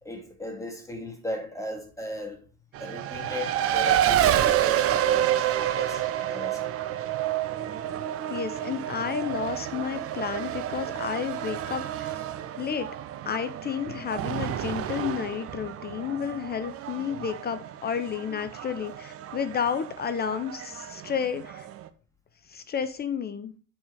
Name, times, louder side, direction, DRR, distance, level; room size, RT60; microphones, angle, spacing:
voice 1, 0.0-2.4 2.8-6.0 6.3-6.8 13.8-13.9, left 1 dB, 5° left, 2.2 m, -37 dB
Race car auto racing, 2.7-21.9, right 11 dB, 30° right, 0.7 m, -29 dB
voice 2, 8.3-12.1 12.6-12.9 13.3-21.7 22.5-23.5, left 7 dB, 20° left, 0.6 m, -31 dB
8.0 x 4.6 x 4.9 m
figure-of-eight pair, 70°, 44 cm